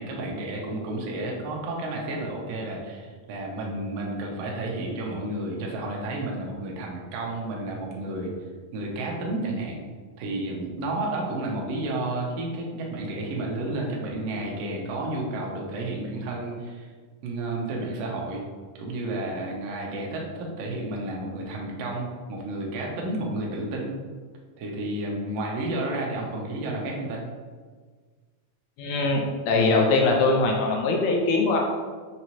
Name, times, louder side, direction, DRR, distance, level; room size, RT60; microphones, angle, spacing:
voice 1, 0.0-8.3 8.7-9.8 10.2-16.9 17.2-18.4 18.8-23.9 24.6-27.2, right 2 dB, 80° right, -1 dB, 1.5 m, -31 dB
voice 2, 28.8-31.6, left 3 dB, 80° left, 0 dB, 1.9 m, -22 dB
5.2 x 2.9 x 2.8 m, 1.5 s
omnidirectional pair, 3.5 m